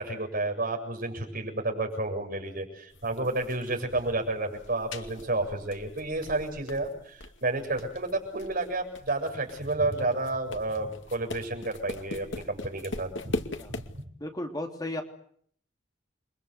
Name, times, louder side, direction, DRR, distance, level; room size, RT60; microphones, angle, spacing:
voice 1, 0.0-13.4 13.7-13.8, right 2 dB, 50° right, 3 dB, 7.7 m, -31 dB
sound 1, 2.9-14.0, left 2 dB, 70° left, 2.4 m, -41 dB
voice 2, 14.2-15.0, left 1 dB, 20° left, 3 dB, 3.3 m, -34 dB
29.0 x 24.5 x 8.3 m, 0.63 s
head